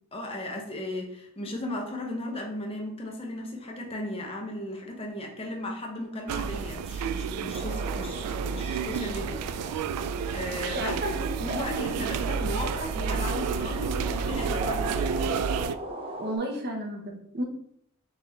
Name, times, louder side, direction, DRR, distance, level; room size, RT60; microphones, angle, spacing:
voice 1, 0.1-9.4 10.3-15.2, left 1 dB, 25° left, 1 dB, 0.7 m, -36 dB
sound 1, 6.3-15.7, right 6 dB, 90° right, 0.3 m, -30 dB
sound 2, 7.5-16.4, right 1 dB, 25° right, 0.5 m, -38 dB
voice 2, 10.7-12.1 16.2-17.4, right 1 dB, 45° right, 2 dB, 1.0 m, -33 dB
3.9 x 3.5 x 3.3 m, 0.68 s
head